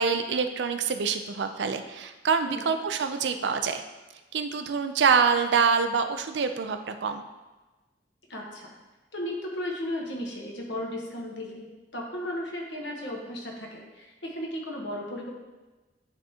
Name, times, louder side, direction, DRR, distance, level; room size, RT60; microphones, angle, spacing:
voice 1, 0.0-3.8 4.3-7.2, right 5 dB, 75° right, 8 dB, 0.4 m, -25 dB
voice 2, 2.4-2.7 8.3-8.7 9.1-15.3, left 1 dB, 80° left, -1 dB, 1.2 m, -35 dB
9.8 x 3.6 x 2.9 m, 1.2 s
head